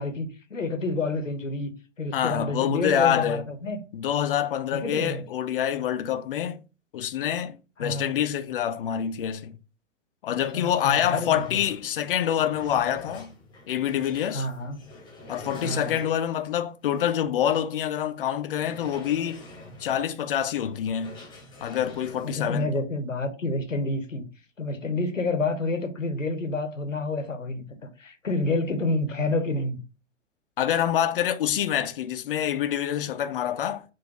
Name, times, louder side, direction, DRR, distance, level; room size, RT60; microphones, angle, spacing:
voice 1, 0.0-1.7 2.0-3.8 4.7-5.2 7.8-8.2 10.5-11.5 14.3-14.8 15.6-15.9 22.2-24.2 24.6-29.8, left 2 dB, 85° left, 0.8 m, -29 dB
voice 2, 2.1-3.5 3.9-6.6 6.9-9.6 10.2-13.3 13.7-14.5 15.3-19.4 19.8-21.2 21.6-22.7 30.6-33.8, left 10 dB, 45° left, 0.5 m, -26 dB
sound 1, 10.4-10.5 10.8-16.5 17.0-17.1 17.5-17.6 18.5-22.4, left 1 dB, 10° left, 0.9 m, -46 dB
3.8 x 2.5 x 3.5 m
figure-of-eight pair, 110°, 38 cm